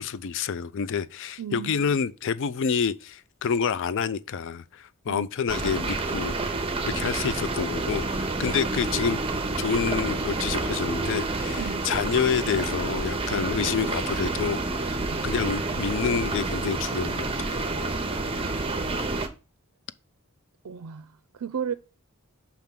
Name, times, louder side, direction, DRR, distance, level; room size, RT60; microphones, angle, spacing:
voice 1, 0.0-6.4 6.9-9.2 9.6-17.6, left 6 dB, 55° left, 0.4 m, -28 dB
voice 2, 1.4-2.0 5.1-5.3 11.6-11.9 13.3-13.5 15.0-15.3 18.3-19.0 20.6-21.7, right 7 dB, 75° right, 0.4 m, -36 dB
sound 1, 5.5-19.3, right 2 dB, 25° right, 0.8 m, -29 dB
5.8 x 3.6 x 5.8 m
head